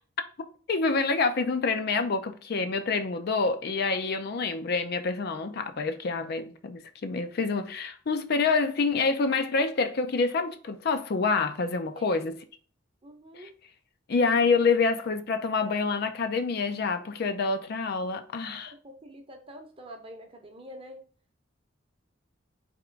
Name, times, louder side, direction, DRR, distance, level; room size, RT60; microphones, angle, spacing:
voice 1, 0.7-12.4 13.3-13.5 14.1-18.7, left 4 dB, 55° left, 0.4 m, -27 dB
voice 2, 13.0-13.5 18.5-21.0, equal, 30° right, 0.8 m, -46 dB
3.7 x 3.0 x 4.4 m
head